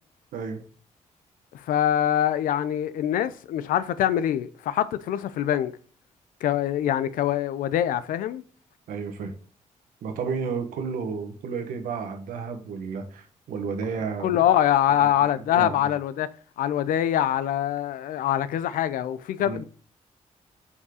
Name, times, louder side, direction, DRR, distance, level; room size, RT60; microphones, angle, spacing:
voice 1, 1.5-5.7 6.4-8.4 14.2-16.3 16.6-19.6, left 11 dB, 90° left, 0.5 m, -24 dB
voice 2, 8.9-9.3 10.0-14.4 15.0-15.9 19.4-19.6, right 5 dB, 90° right, 1.3 m, -32 dB
5.5 x 4.7 x 4.9 m
cardioid pair, 65°, 14 cm